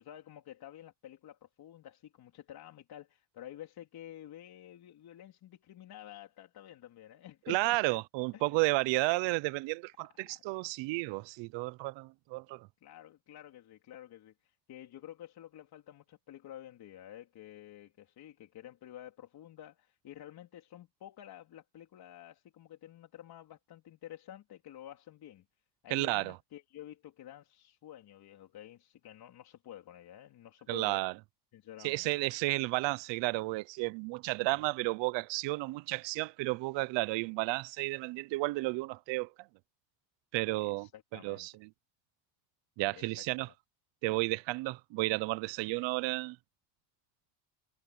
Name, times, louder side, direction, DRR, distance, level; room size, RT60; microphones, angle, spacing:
voice 1, 0.0-8.0 8.3-8.7 10.2-10.4 12.8-25.5 25.8-31.1 31.5-32.1 40.5-41.5 42.9-43.5, left 12 dB, 50° left, 3.9 m, -50 dB
voice 2, 7.5-12.7 25.9-26.4 30.7-31.1 31.8-39.3 40.3-41.7 42.8-43.5 44.0-46.4, right 22 dB, 65° right, 0.8 m, -32 dB
cardioid pair, 115°, 47 cm